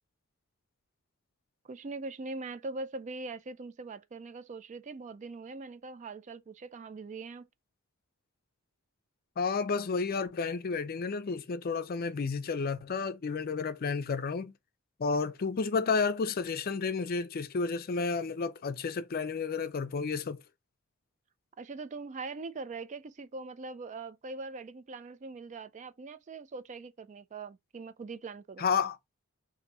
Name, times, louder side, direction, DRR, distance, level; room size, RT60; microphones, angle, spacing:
voice 1, 1.6-7.5 21.6-28.7, right 3 dB, 35° right, 0.4 m, -42 dB
voice 2, 9.4-14.5 15.0-20.4 28.6-29.0, left 5 dB, 45° left, 0.4 m, -31 dB
3.9 x 2.6 x 4.1 m
head